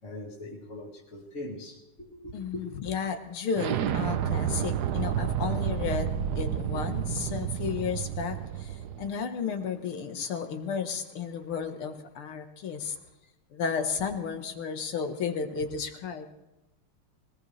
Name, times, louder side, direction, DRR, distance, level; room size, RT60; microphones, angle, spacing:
voice 1, 0.0-2.6, left 1 dB, 35° left, 2.3 m, -41 dB
voice 2, 2.3-13.0 13.5-16.3, left 6 dB, 80° left, 2.3 m, -33 dB
Explosion, 3.6-9.1, right 9 dB, 65° right, 1.1 m, -30 dB
22.0 x 18.5 x 3.3 m
omnidirectional pair, 2.4 m